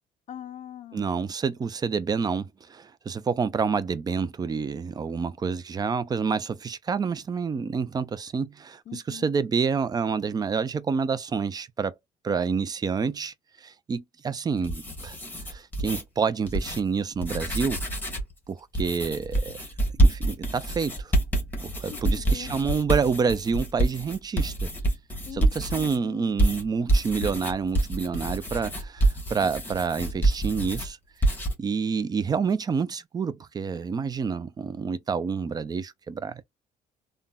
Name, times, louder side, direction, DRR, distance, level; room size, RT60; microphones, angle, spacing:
voice 1, 0.3-1.3 8.9-9.3 21.9-22.5 25.3-25.5 25.8-26.4, left 10 dB, 45° left, 0.4 m, -42 dB
voice 2, 0.9-11.9 12.2-13.3 13.6-15.2 15.5-17.8 18.5-19.6 20.0-21.1 21.8-24.7 25.3-31.0 31.6-36.4, right 5 dB, 25° right, 0.3 m, -28 dB
sound 1, 14.5-16.0 16.5-16.8 17.1-18.3 18.7-26.0 26.4-30.9 31.2-31.5, right 2 dB, 10° left, 1.0 m, -26 dB
3.6 x 2.1 x 2.2 m
cardioid pair, 110°, 17 cm